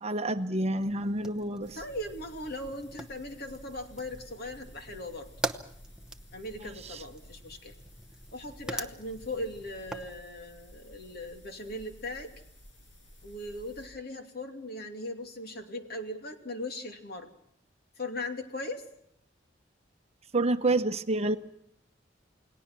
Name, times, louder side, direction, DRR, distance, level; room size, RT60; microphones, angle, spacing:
voice 1, 0.0-1.8 6.9-7.0 20.3-21.4, right 2 dB, 35° right, 9 dB, 1.0 m, -28 dB
Fire, 0.8-10.2, right 2 dB, 5° right, 0.9 m, -43 dB
sound 1, 1.6-13.9, equal, 75° left, 6.1 m, -53 dB
voice 2, 1.7-5.3 6.3-7.7 8.3-12.3 13.2-17.3 18.0-18.8, left 1 dB, 55° left, 5 dB, 2.7 m, -39 dB
29.0 x 18.5 x 6.1 m, 0.70 s
head